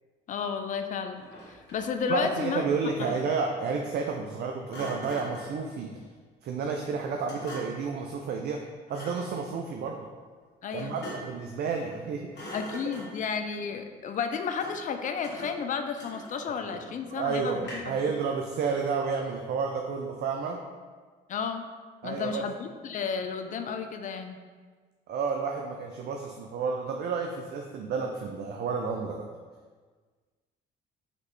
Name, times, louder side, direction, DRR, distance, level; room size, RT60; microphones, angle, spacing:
voice 1, 0.3-2.6 3.0-3.2 10.6-11.0 12.5-17.9 21.3-21.7 22.0-24.4, left 6 dB, 40° left, 7 dB, 0.4 m, -32 dB
Thump thud, 1.1-2.0 4.7-5.6 7.3-7.9 8.9-9.4 10.8-11.4 11.8-12.0 12.3-13.3 14.6-14.9 15.2-16.6 17.6-18.1, equal, 55° left, 1.4 m, -43 dB
voice 2, 2.1-6.0 6.4-8.6 8.9-10.1 10.7-12.6 12.9-13.0 16.7-20.6 22.0-22.4 25.1-29.3, right 5 dB, 50° right, 2 dB, 0.4 m, -31 dB
4.0 x 3.1 x 3.1 m, 1.5 s
hypercardioid pair, 60°, 21 cm